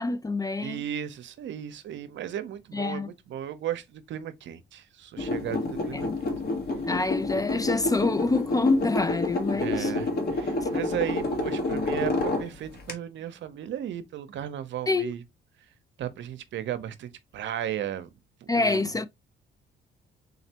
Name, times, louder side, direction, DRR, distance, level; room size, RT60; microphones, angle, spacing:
voice 1, 0.0-0.8 2.7-3.1 5.9-6.1 6.9-9.9 14.9-15.1 18.5-19.1, left 3 dB, 20° left, 0.3 m, -26 dB
voice 2, 0.6-6.1 9.5-15.2 16.0-18.1 18.4-18.9, right 10 dB, 70° right, 0.7 m, -35 dB
sound 1, 5.2-12.9, left 2 dB, 50° left, 1.3 m, -29 dB
3.9 x 3.2 x 2.9 m
cardioid pair, 90°, 20 cm